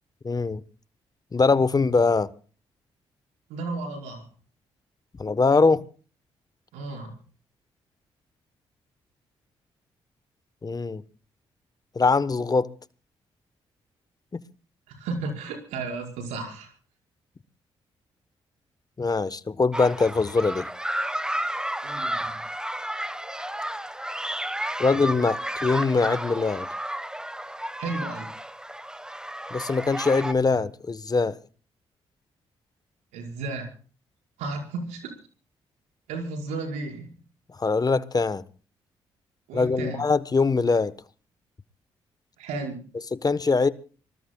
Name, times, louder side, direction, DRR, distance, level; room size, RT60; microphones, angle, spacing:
voice 1, 0.2-0.6 1.3-2.3 5.2-5.8 10.6-11.0 11.9-12.7 14.3-14.4 19.0-20.6 24.8-26.7 29.5-31.4 37.6-38.4 39.5-40.9 43.1-43.7, left 4 dB, 35° left, 1.1 m, -22 dB
voice 2, 3.5-4.2 6.7-7.2 14.9-16.7 21.8-22.4 27.8-28.3 33.1-33.7 34.4-35.1 36.1-37.1 39.5-40.0 42.4-42.8, right 3 dB, 85° right, 5.3 m, -33 dB
sound 1, 19.7-30.3, right 1 dB, 5° right, 1.2 m, -32 dB
26.5 x 20.0 x 2.3 m
supercardioid pair, 50°, 12 cm